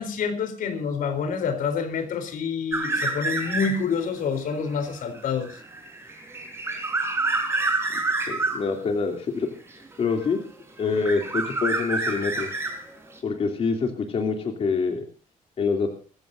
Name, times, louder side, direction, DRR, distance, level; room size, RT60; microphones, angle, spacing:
voice 1, 0.0-5.6, left 5 dB, 80° left, 9 dB, 3.7 m, -27 dB
sound 1, 2.7-4.0 4.4-8.7 9.7-10.5 10.8-13.2, right 3 dB, 20° right, 4.5 m, -28 dB
voice 2, 8.3-9.5 10.0-10.4 10.8-12.5 13.2-15.0 15.6-15.9, left 4 dB, 45° left, 4 dB, 3.0 m, -25 dB
24.0 x 15.5 x 2.6 m, 0.38 s
wide cardioid pair, 175°, 14 cm